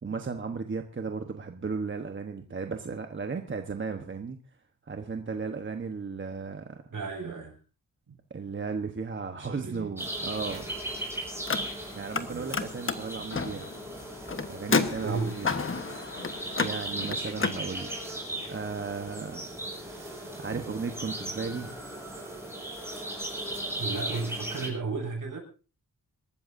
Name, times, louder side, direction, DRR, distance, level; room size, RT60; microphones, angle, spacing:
voice 1, 0.0-4.4 4.8-6.8 8.3-10.6 11.9-13.6 14.5-15.5 16.6-18.0 18.5-21.8, right 5 dB, 35° right, 5 dB, 1.1 m, -35 dB
voice 2, 6.9-7.6 8.1-8.2 9.4-9.9 12.2-12.5 15.0-15.4 23.8-25.4, right 4 dB, 70° right, 1 dB, 6.8 m, -34 dB
sound 1, 10.0-24.7, right 1 dB, 5° right, 6.5 m, -37 dB
Car, 11.3-12.2 12.5-17.6, left 4 dB, 40° left, 1.2 m, -31 dB
26.5 x 13.5 x 2.7 m, 0.34 s
wide cardioid pair, 135°, 34 cm